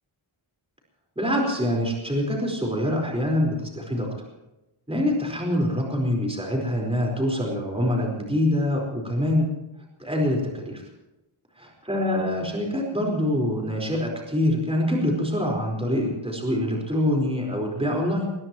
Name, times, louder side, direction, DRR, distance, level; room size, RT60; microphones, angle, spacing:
voice 1, 1.2-4.1 4.9-9.5 10.0-10.8 11.6-18.3, left 1 dB, 10° right, 0 dB, 4.6 m, -25 dB
22.5 x 20.5 x 3.1 m, 0.97 s
wide cardioid pair, 140°, 49 cm